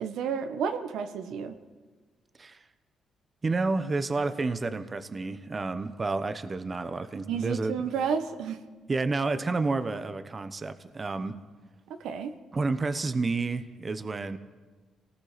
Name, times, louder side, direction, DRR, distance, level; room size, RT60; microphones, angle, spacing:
voice 1, 0.0-1.6 7.3-8.6 12.0-12.3, right 6 dB, 90° right, 8 dB, 1.4 m, -31 dB
voice 2, 3.4-7.9 8.9-11.4 12.5-14.4, right 3 dB, 30° right, 11 dB, 1.0 m, -30 dB
27.0 x 19.0 x 5.2 m, 1.3 s
cardioid pair, 110°, 0 cm